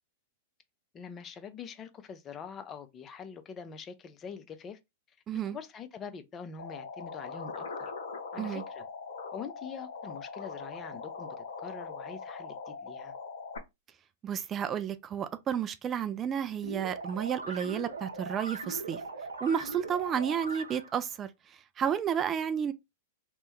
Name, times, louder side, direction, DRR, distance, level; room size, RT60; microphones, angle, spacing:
voice 1, 0.9-4.8 5.5-7.9 8.3-8.8 9.3-13.1, left 6 dB, 30° left, 0.5 m, -44 dB
voice 2, 5.3-5.6 8.4-8.6 14.2-19.0 19.4-22.7, right 8 dB, 25° right, 0.3 m, -32 dB
sound 1, 6.6-13.6, left 4 dB, 70° left, 0.6 m, -41 dB
sound 2, 16.6-21.0, right 3 dB, 85° right, 0.6 m, -40 dB
3.0 x 2.0 x 3.4 m
hypercardioid pair, 100°, 0 cm